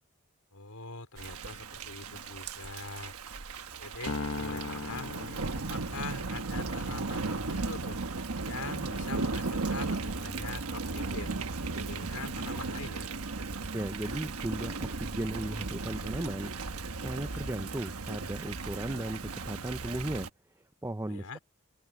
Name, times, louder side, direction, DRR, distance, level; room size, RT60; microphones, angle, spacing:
voice 1, 0.5-3.1 3.8-5.1 5.5-8.0 8.4-11.4 11.6-13.1 21.1-21.4, left 3 dB, 90° left, 4.5 m, -43 dB
Thunder / Rain, 1.2-20.3, right 3 dB, 90° right, 1.3 m, -36 dB
Piano, 4.1-6.5, left 3 dB, 70° left, 1.2 m, -38 dB
sound 1, 5.5-16.5, equal, 25° left, 5.3 m, -60 dB
voice 2, 13.7-20.3 20.8-21.4, right 1 dB, 15° right, 0.6 m, -36 dB
open air
head